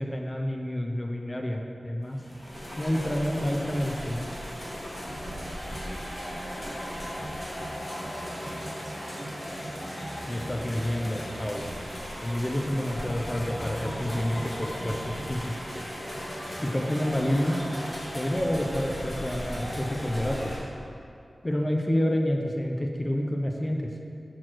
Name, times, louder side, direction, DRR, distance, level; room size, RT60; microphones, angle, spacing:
voice 1, 0.0-2.2 2.8-4.3 10.3-11.7 12.2-15.5 16.6-17.6 18.1-20.6 21.4-23.9, equal, 25° left, 1 dB, 0.6 m, -28 dB
sound 1, 2.1-20.6, equal, 40° left, 1.7 m, -36 dB
voice 2, 4.9-7.7 8.1-9.9, right 1 dB, 35° right, 0 dB, 0.8 m, -47 dB
5.8 x 4.5 x 6.2 m, 2.5 s
wide cardioid pair, 95°, 0 cm